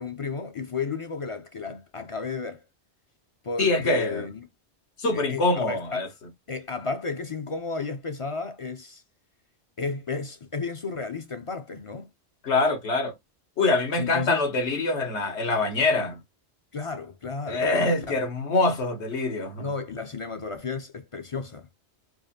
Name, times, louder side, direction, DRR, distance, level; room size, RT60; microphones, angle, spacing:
voice 1, 0.0-2.6 3.4-4.5 5.1-6.1 6.5-9.0 9.8-12.1 14.0-14.4 16.7-17.7 18.0-18.2 19.6-21.7, left 4 dB, 40° left, 0.5 m, -33 dB
voice 2, 3.6-4.3 5.0-6.1 12.4-13.1 13.6-16.2 17.4-19.7, left 2 dB, 80° left, 1.4 m, -24 dB
4.7 x 2.5 x 2.7 m
omnidirectional pair, 1.1 m